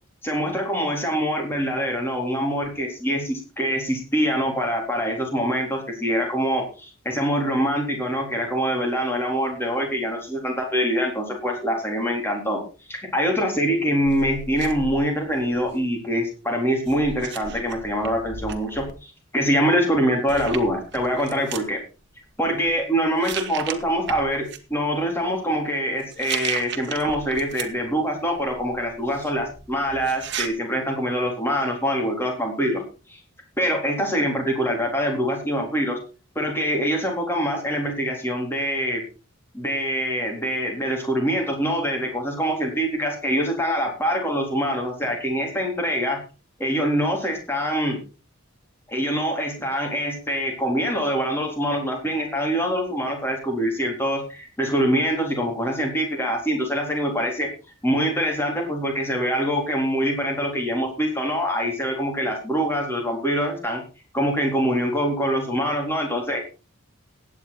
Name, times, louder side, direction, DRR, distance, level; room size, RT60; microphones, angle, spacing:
voice 1, 0.2-12.6 12.9-21.8 22.4-32.8 33.1-33.2 33.6-36.0 36.4-39.0 39.5-46.2 46.6-48.0 48.9-57.5 57.8-63.8 64.1-66.4, equal, 10° left, 1 dB, 3.8 m, -24 dB
sound 1, 14.0-15.9 16.8-18.9 19.9-20.0 20.3-21.7 22.4-22.8 23.2-24.6 26.0-27.9 28.3-30.5, right 6 dB, 55° right, 1.6 m, -35 dB
16.0 x 9.7 x 4.1 m, 0.34 s
head